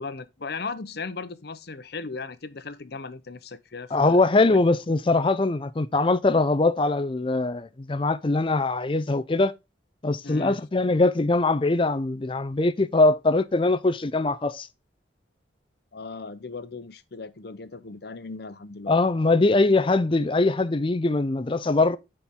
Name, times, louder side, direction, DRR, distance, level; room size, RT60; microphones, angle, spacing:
voice 1, 0.0-4.1 4.4-4.6 10.2-10.6 15.9-19.0, left 4 dB, 55° left, 0.8 m, -37 dB
voice 2, 3.9-9.5 10.0-14.7 18.9-22.0, left 2 dB, 25° left, 0.5 m, -22 dB
9.7 x 4.5 x 3.6 m
head